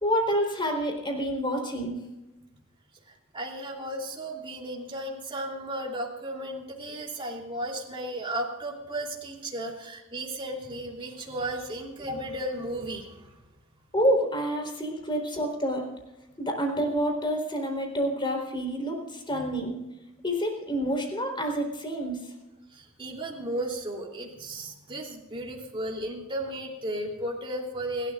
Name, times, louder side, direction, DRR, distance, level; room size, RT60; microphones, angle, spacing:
voice 1, 0.0-2.0 13.9-15.9 16.4-19.8 20.2-22.3, equal, 25° left, 2 dB, 3.9 m, -28 dB
voice 2, 3.1-13.3 19.3-19.5 22.7-28.1, right 1 dB, 25° right, -1 dB, 3.2 m, -35 dB
30.0 x 12.5 x 2.5 m, 1.0 s
head